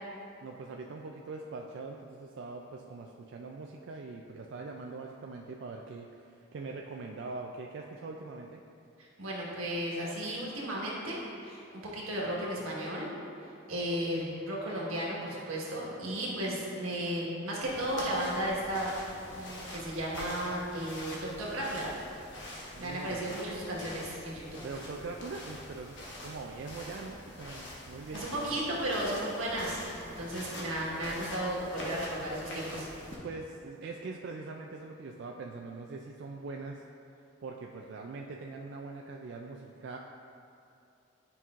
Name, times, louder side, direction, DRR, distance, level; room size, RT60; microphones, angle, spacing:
voice 1, 0.4-8.6 22.7-23.4 24.5-28.5 33.2-36.9 37.4-40.0, right 3 dB, 60° right, 1 dB, 0.3 m, -42 dB
voice 2, 9.0-13.1 13.4-18.9 19.3-21.9 22.8-24.6 28.1-32.9, right 1 dB, 85° right, -4 dB, 1.4 m, -34 dB
sound 1, 17.6-33.2, left 1 dB, 55° left, 1.1 m, -45 dB
9.9 x 5.4 x 2.5 m, 2.7 s
head